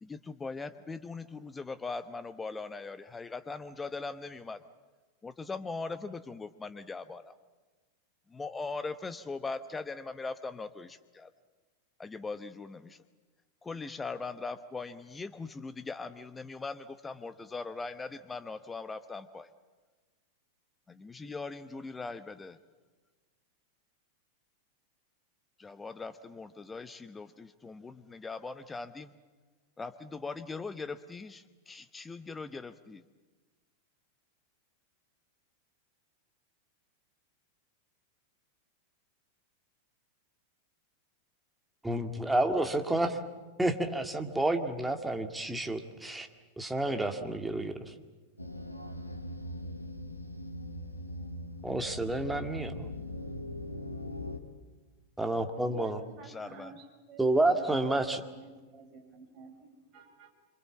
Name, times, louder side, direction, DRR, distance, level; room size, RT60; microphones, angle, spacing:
voice 1, 0.0-4.6 5.2-7.3 8.3-11.3 12.0-13.0 13.6-19.5 20.9-22.6 25.6-29.1 29.8-33.0 56.2-56.8, left 4 dB, 15° left, 13 dB, 0.9 m, -40 dB
voice 2, 41.8-43.2 43.6-46.3 46.6-47.9 51.6-52.9 55.2-56.0 57.2-58.2, right 2 dB, 5° right, 5 dB, 2.0 m, -30 dB
sound 1, 48.4-54.4, left 1 dB, 85° left, 1.6 m, -40 dB
voice 3, 55.5-60.3, right 4 dB, 35° right, 2 dB, 6.2 m, -50 dB
26.0 x 26.0 x 7.3 m, 1.3 s
figure-of-eight pair, 90°, 0 cm